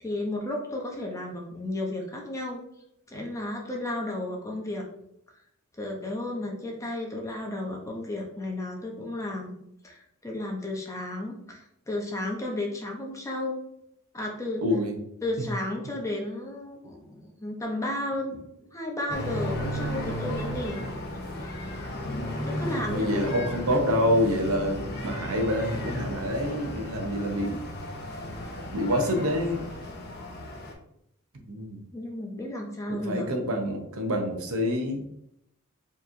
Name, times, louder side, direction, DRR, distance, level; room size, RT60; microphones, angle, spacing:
voice 1, 0.0-2.6 3.1-4.8 5.8-9.6 9.8-13.6 14.1-14.6 15.2-20.8 21.4-21.8 22.4-23.1 31.9-33.3, left 1 dB, 15° left, 0 dB, 0.7 m, -33 dB
voice 2, 14.6-15.0 15.4-15.5 22.8-27.6 28.7-29.6 31.5-31.8 32.9-35.1, equal, 70° right, 4 dB, 0.7 m, -27 dB
sound 1, 19.1-30.7, left 1 dB, 50° left, 0.7 m, -34 dB
4.6 x 3.0 x 2.5 m, 0.76 s
head